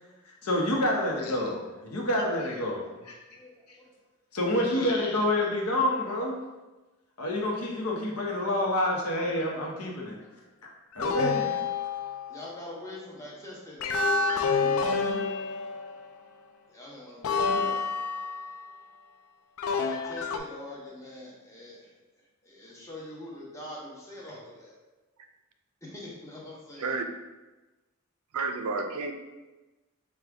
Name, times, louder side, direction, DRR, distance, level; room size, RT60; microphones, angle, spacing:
voice 1, 0.2-3.1 4.3-6.4 7.2-10.2 10.6-11.6, left 1 dB, 90° left, -1 dB, 0.9 m, -28 dB
voice 2, 3.3-3.9 4.4-5.1 10.2-10.3 12.3-15.0 16.7-17.9 19.7-21.9 22.4-24.8 25.8-27.0, left 1 dB, 15° left, -5 dB, 0.9 m, -44 dB
sound 1, 11.0-12.4 13.8-16.2 17.2-18.7 19.6-20.4, left 4 dB, 65° left, 0.3 m, -28 dB
voice 3, 28.3-29.1, right 3 dB, 75° right, 6 dB, 0.4 m, -30 dB
5.0 x 2.3 x 3.5 m, 1.1 s
head